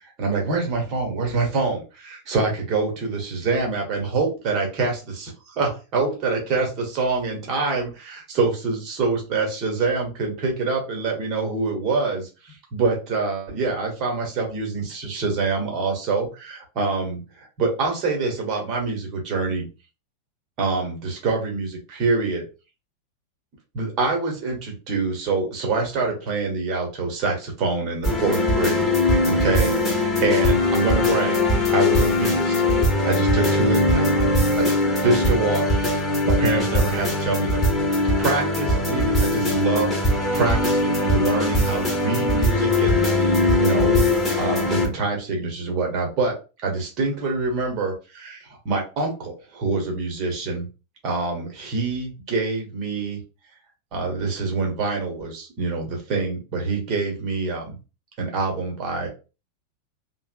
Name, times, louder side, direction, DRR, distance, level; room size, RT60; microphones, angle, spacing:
voice 1, 0.2-19.7 20.6-22.4 23.7-28.9 29.3-31.4 31.7-32.6 33.0-34.1 34.6-34.7 35.0-35.7 36.0-37.6 38.2-39.9 40.3-44.0 44.4-46.4 46.6-50.7 51.0-53.2 53.9-57.7 58.2-59.1, right 3 dB, 40° right, 1 dB, 1.1 m, -25 dB
sound 1, 28.0-44.9, left 2 dB, 5° left, 1.0 m, -20 dB
2.9 x 2.0 x 2.5 m, 0.32 s
figure-of-eight pair, 90°, 0 cm